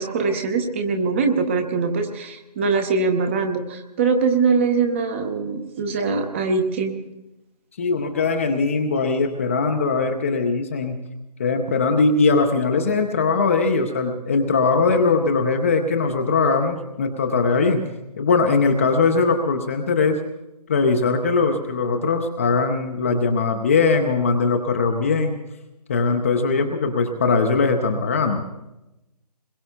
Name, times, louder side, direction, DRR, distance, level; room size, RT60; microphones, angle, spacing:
voice 1, 0.0-6.9, right 4 dB, 20° right, 5 dB, 0.8 m, -22 dB
voice 2, 7.8-11.0 11.4-17.8 18.2-20.2 20.7-25.4 25.9-28.5, left 4 dB, 20° left, 4 dB, 0.6 m, -20 dB
27.5 x 21.5 x 2.3 m, 0.95 s
figure-of-eight pair, 145°, 21 cm